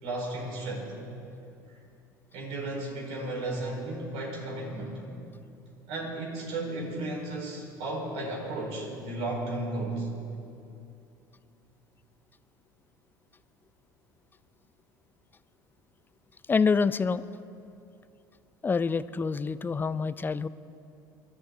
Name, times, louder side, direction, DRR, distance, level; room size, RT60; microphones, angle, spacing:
voice 1, 0.0-1.0 1.7-1.8 2.3-5.0 5.9-10.1, right 2 dB, 65° right, -1 dB, 4.5 m, -34 dB
voice 2, 16.5-17.3 18.6-20.5, left 5 dB, 20° left, 16 dB, 0.5 m, -26 dB
23.5 x 12.0 x 3.9 m, 2.7 s
hypercardioid pair, 70°, 11 cm